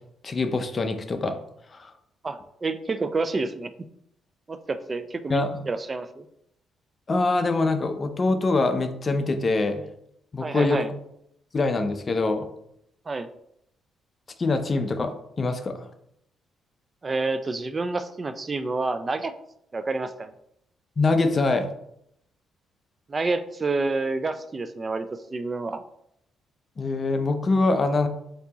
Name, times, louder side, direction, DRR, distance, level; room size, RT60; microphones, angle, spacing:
voice 1, 0.2-1.4 1.7-1.9 5.3-5.5 7.1-9.8 10.3-10.8 11.5-12.5 14.4-15.9 21.0-21.7 26.8-28.1, left 3 dB, 35° left, 8 dB, 0.5 m, -24 dB
voice 2, 2.2-3.7 4.5-6.2 10.4-10.9 13.1-13.3 17.0-19.3 19.7-20.3 23.1-25.8, right 3 dB, 30° right, 10 dB, 0.3 m, -28 dB
4.4 x 2.8 x 4.0 m, 0.75 s
cardioid pair, 85°, 0 cm